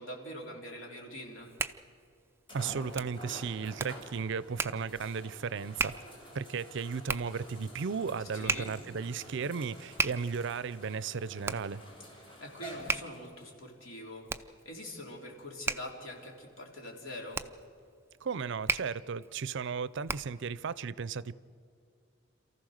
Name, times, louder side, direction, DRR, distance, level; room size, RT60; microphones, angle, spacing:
voice 1, 0.0-1.5 8.3-8.7 12.1-17.4, left 1 dB, 75° left, 3.6 m, -44 dB
Hands, 1.2-20.5, right 3 dB, 10° right, 0.4 m, -38 dB
sound 1, 1.4-1.5 2.5-13.5 14.2-14.3 17.8-17.9, equal, 25° left, 4.8 m, -49 dB
voice 2, 2.5-5.9 6.3-11.8 18.2-21.4, right 5 dB, 65° right, 0.5 m, -35 dB
27.5 x 14.5 x 6.5 m
head